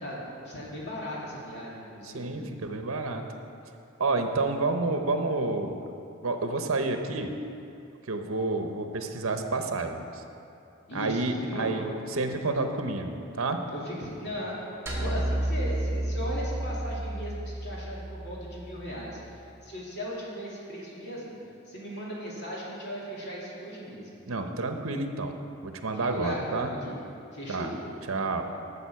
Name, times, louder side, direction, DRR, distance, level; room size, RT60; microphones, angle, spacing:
voice 1, 0.0-2.5 10.9-11.9 13.7-21.4 21.7-24.2 25.9-27.0 27.3-27.7, equal, 55° left, -5 dB, 2.6 m, -37 dB
voice 2, 2.1-3.2 4.0-5.8 6.2-7.3 8.1-10.2 10.9-13.6 24.3-25.4 25.6-26.7 27.5-27.7 28.1-28.4, right 3 dB, 80° right, 6 dB, 0.9 m, -29 dB
sound 1, 14.9-19.2, right 1 dB, 10° right, 2.0 m, -31 dB
13.0 x 6.9 x 5.7 m, 2.7 s
head